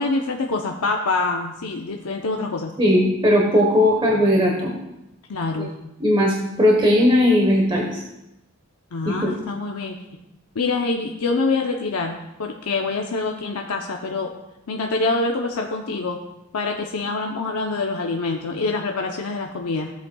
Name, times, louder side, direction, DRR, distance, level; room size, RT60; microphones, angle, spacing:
voice 1, 0.0-2.8 5.3-5.7 8.9-10.0 10.5-14.3 14.7-16.2 16.5-19.9, left 3 dB, 90° left, 2 dB, 0.7 m, -25 dB
voice 2, 2.8-4.7 5.6-5.7 6.0-8.0 9.0-9.3, left 1 dB, 25° right, -1 dB, 1.1 m, -18 dB
14.5 x 8.1 x 2.3 m, 0.91 s
head